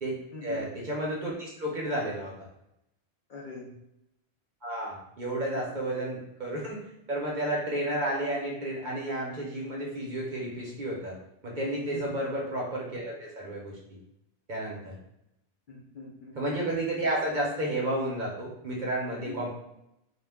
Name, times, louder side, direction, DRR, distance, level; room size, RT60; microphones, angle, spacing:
voice 1, 0.0-2.3 4.6-6.8 7.1-11.2 11.4-13.8 14.5-15.0 16.4-19.5, right 1 dB, 50° right, -3 dB, 0.7 m, -32 dB
voice 2, 3.3-3.7 5.6-5.8 11.9-12.1 15.7-16.4 19.2-19.4, left 3 dB, 55° left, -3 dB, 0.7 m, -42 dB
2.3 x 2.1 x 3.4 m, 0.83 s
omnidirectional pair, 1.1 m